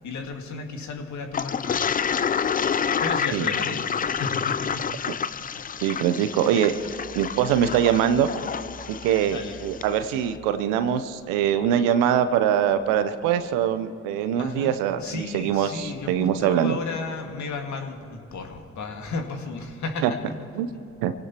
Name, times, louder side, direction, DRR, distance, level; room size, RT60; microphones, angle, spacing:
voice 1, 0.0-1.8 3.0-4.8 5.5-5.8 9.3-9.6 14.3-20.2, left 4 dB, 60° left, 3 dB, 2.0 m, -34 dB
Toilet flush, 1.3-9.9, left 7 dB, 25° left, 0.5 m, -28 dB
voice 2, 5.8-6.7 7.1-8.3 8.9-16.8 20.0-20.1 20.6-20.7 21.0-21.1, right 9 dB, 75° right, 11 dB, 0.8 m, -23 dB
26.5 x 17.0 x 3.0 m, 2.8 s
hypercardioid pair, 40°, 33 cm